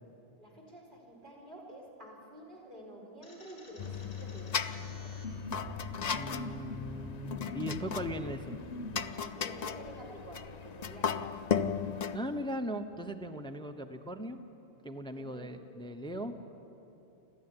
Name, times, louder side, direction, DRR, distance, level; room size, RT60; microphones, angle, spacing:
voice 1, 0.4-5.1 9.4-11.4 15.2-15.5, right 1 dB, 45° right, -2 dB, 4.9 m, -50 dB
sound 1, 3.2-9.0, left 1 dB, 70° left, 4.7 m, -44 dB
sound 2, 3.8-12.2, left 7 dB, 45° left, 0.6 m, -36 dB
voice 2, 6.1-8.6 12.1-14.4 14.8-16.4, equal, 5° left, 6 dB, 0.9 m, -38 dB
29.0 x 12.5 x 9.8 m, 3.0 s
omnidirectional pair, 1.2 m